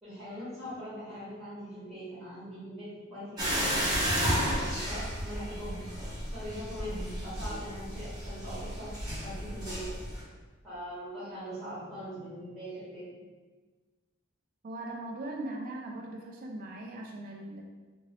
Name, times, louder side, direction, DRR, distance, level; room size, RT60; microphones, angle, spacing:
voice 1, 0.0-5.8 6.3-8.9 9.2-9.9 10.6-13.1, equal, ahead, -13 dB, 1.4 m, -41 dB
sound 1, 3.4-10.2, equal, 20° right, 0.8 m, -33 dB
voice 2, 14.6-17.6, right 2 dB, 40° right, -1 dB, 0.3 m, -39 dB
2.8 x 2.6 x 3.0 m, 1.3 s
head